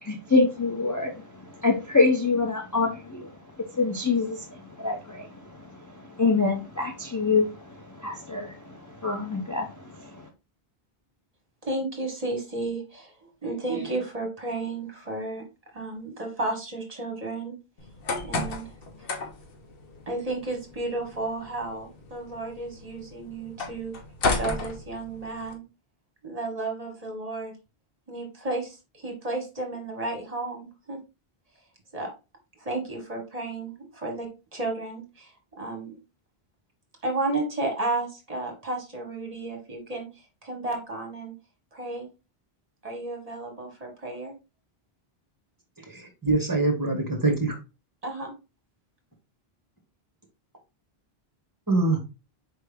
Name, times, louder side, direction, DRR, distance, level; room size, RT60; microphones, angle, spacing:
voice 1, 0.0-3.3 3.6-10.3, left 4 dB, 25° left, 1 dB, 0.5 m, -26 dB
voice 2, 11.6-15.4 15.7-17.5 18.2-18.7 19.1-19.2 20.1-23.9 24.3-25.6 26.2-27.5 28.1-31.0 31.9-32.1 32.6-36.0 37.0-41.3 41.7-42.1 42.8-44.3 48.0-48.3, right 2 dB, 40° right, 2 dB, 1.3 m, -33 dB
sound 1, 17.8-25.5, left 3 dB, 65° left, 1.0 m, -34 dB
voice 3, 45.9-47.6 51.7-52.0, right 3 dB, 20° right, 2 dB, 1.2 m, -24 dB
4.5 x 3.3 x 3.4 m, 0.28 s
omnidirectional pair, 1.1 m